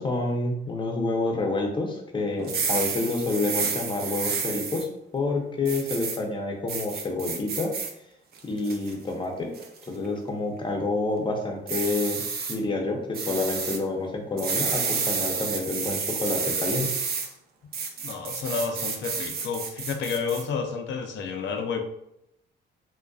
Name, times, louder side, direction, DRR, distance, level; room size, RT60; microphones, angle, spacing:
voice 1, 0.0-4.9 5.1-7.7 8.4-9.5 9.9-12.2 12.5-17.0, left 3 dB, 25° left, 1 dB, 0.6 m, -28 dB
sound 1, 2.4-4.8 5.7-6.2 6.7-7.9 8.4-8.9 9.5-9.9 11.7-12.6 13.1-13.8 14.4-17.3 17.7-20.4, right 5 dB, 55° right, 0.5 m, -30 dB
voice 2, 18.0-21.8, left 5 dB, 70° left, 4 dB, 0.5 m, -30 dB
2.5 x 2.2 x 2.3 m, 0.78 s
cardioid pair, 90°, 20 cm